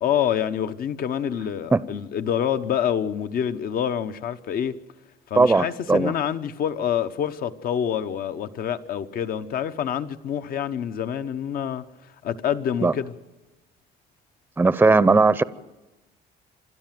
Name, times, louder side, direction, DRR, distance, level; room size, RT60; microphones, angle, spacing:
voice 1, 0.0-4.8 5.3-11.8 12.2-13.1, left 9 dB, 60° left, 1.1 m, -27 dB
voice 2, 5.4-6.1 12.8-12.9 14.6-15.4, right 3 dB, 10° right, 0.7 m, -18 dB
28.0 x 12.0 x 7.6 m
cardioid pair, 110°, 17 cm